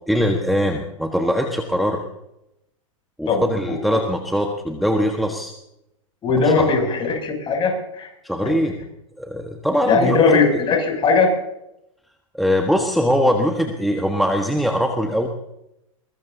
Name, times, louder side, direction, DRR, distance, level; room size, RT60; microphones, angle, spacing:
voice 1, 0.1-2.0 3.2-5.5 6.4-6.7 8.2-8.7 9.2-10.4 12.3-15.3, equal, ahead, 3 dB, 1.4 m, -21 dB
voice 2, 3.3-4.0 6.2-8.1 9.8-11.3, left 4 dB, 30° left, 2 dB, 7.2 m, -19 dB
22.5 x 20.5 x 2.8 m, 0.83 s
hypercardioid pair, 110°, 17 cm